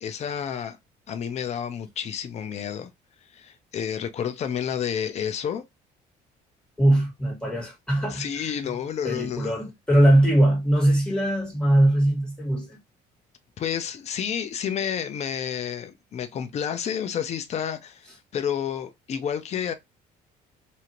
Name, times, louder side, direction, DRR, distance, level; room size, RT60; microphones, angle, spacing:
voice 1, 0.0-0.8 1.1-2.9 3.3-5.6 8.1-9.6 13.6-19.7, left 8 dB, 40° left, 0.5 m, -30 dB
voice 2, 6.8-8.5 9.0-12.8, right 1 dB, 5° left, 1.7 m, -21 dB
2.7 x 2.5 x 2.8 m
cardioid pair, 110°, 17 cm